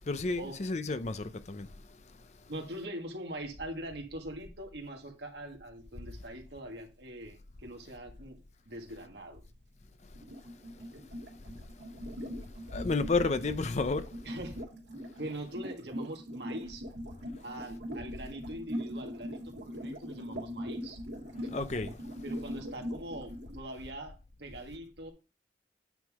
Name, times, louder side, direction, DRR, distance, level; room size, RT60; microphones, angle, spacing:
voice 1, 0.1-1.7 12.7-14.1 21.5-22.0, left 3 dB, 40° left, 0.6 m, -31 dB
voice 2, 2.5-8.4 8.7-9.4 14.3-14.6 15.2-16.9 17.4-21.0 22.2-25.1, right 1 dB, 70° right, 1.7 m, -42 dB
sound 1, 10.2-23.6, equal, 85° right, 2.4 m, -41 dB
9.2 x 3.7 x 4.8 m
head